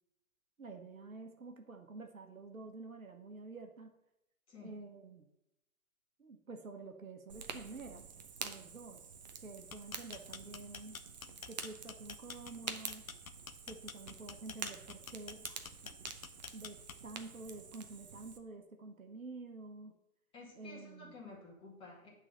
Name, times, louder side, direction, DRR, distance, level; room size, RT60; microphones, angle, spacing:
voice 1, 0.6-3.9 4.6-5.3 6.2-8.1 8.4-9.0 9.4-11.0 11.5-13.0 13.7-16.0 16.5-19.9 20.5-21.2, right 3 dB, 65° right, 5 dB, 1.3 m, -49 dB
Fire, 7.3-18.4, right 6 dB, 30° right, 0.7 m, -48 dB
sound 1, 9.6-17.2, left 6 dB, 65° left, 0.8 m, -48 dB
voice 2, 20.3-22.1, left 3 dB, 10° left, -4 dB, 2.1 m, -52 dB
9.7 x 4.0 x 6.6 m, 0.87 s
figure-of-eight pair, 125°, 44 cm